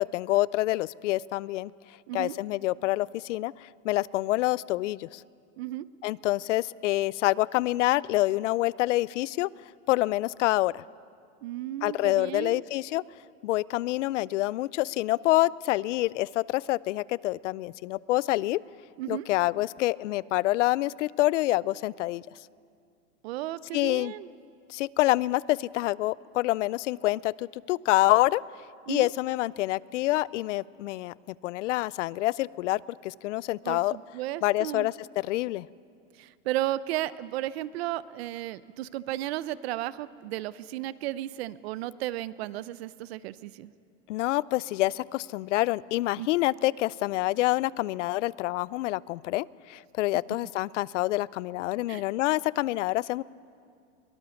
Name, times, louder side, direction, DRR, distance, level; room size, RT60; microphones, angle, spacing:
voice 1, 0.0-1.7 2.1-5.2 6.0-9.5 9.9-10.8 11.8-13.0 13.4-18.6 19.1-22.2 23.7-24.1 24.7-28.4 28.9-31.1 31.4-34.0 34.4-35.7 44.1-53.2, left 17 dB, 70° left, 22 dB, 0.5 m, -27 dB
voice 2, 11.4-12.6 19.0-19.3 23.2-24.3 28.9-29.1 33.6-34.9 36.1-43.7 46.2-46.3 51.9-52.0, right 14 dB, 55° right, 18 dB, 0.6 m, -34 dB
22.5 x 17.5 x 7.0 m, 2.3 s
supercardioid pair, 155°, 38 cm